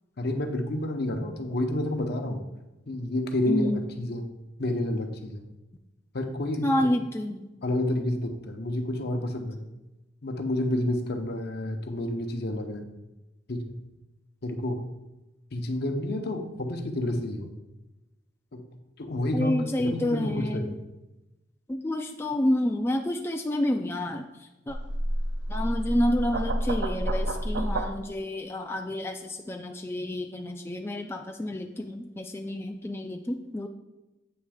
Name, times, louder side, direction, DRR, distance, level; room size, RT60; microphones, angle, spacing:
voice 1, 0.2-2.4 2.9-3.7 4.0-4.3 4.6-5.5 6.1-6.7 7.6-9.6 10.2-12.9 13.5-13.7 14.4-14.9 15.5-17.5 18.5-18.6 19.0-19.5 19.8-20.8, left 1 dB, 60° left, 4 dB, 0.7 m, -29 dB
voice 2, 3.5-3.9 6.6-7.5 19.3-20.7 21.7-24.8 25.5-33.7, left 1 dB, 15° left, 3 dB, 0.3 m, -29 dB
sound 1, 24.7-27.9, right 1 dB, 65° right, 0.6 m, -29 dB
7.9 x 3.1 x 4.9 m, 1.0 s
head